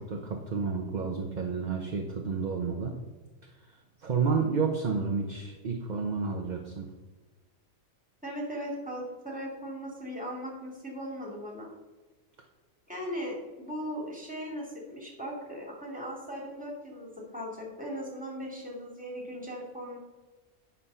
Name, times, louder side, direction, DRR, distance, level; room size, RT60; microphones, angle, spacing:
voice 1, 0.0-2.9 3.4-6.9, right 5 dB, 40° right, 2 dB, 0.9 m, -31 dB
voice 2, 8.2-11.7 12.9-20.0, equal, 5° right, -1 dB, 2.3 m, -38 dB
9.0 x 5.8 x 5.6 m, 1.2 s
omnidirectional pair, 1.3 m